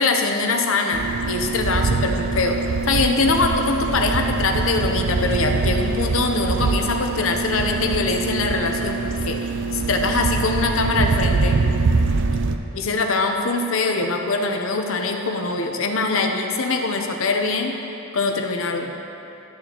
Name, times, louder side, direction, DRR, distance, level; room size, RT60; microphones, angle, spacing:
voice 1, 0.0-2.6 2.9-11.6 12.7-17.8 18.1-18.9, left 3 dB, 70° left, 3 dB, 0.7 m, -23 dB
sound 1, 0.9-12.6, right 4 dB, 65° right, 0.4 m, -23 dB
12.5 x 6.6 x 3.0 m, 2.9 s
head